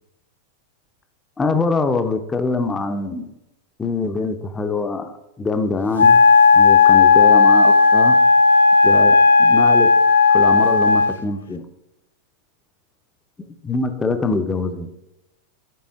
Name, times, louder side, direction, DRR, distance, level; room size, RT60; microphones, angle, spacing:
voice 1, 1.4-3.3 3.8-6.2 6.5-8.2 8.8-10.0 10.3-11.7 13.6-14.9, left 3 dB, 15° left, 7 dB, 0.8 m, -24 dB
Wind instrument woodwind instrument, 6.0-11.2, left 4 dB, 70° left, 0.4 m, -13 dB
11.0 x 4.2 x 3.6 m, 0.91 s
figure-of-eight pair, 90°, 0 cm